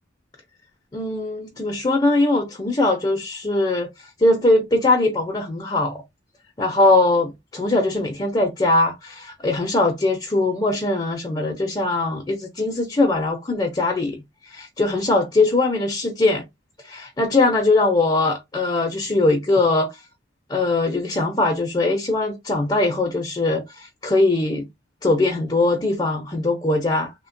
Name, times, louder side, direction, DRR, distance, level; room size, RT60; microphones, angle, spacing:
voice 1, 0.9-3.9 4.2-6.0 6.6-16.4 16.8-19.9 20.5-24.7 25.0-27.1, left 2 dB, 25° left, 0.5 m, -21 dB
3.2 x 2.1 x 2.6 m
head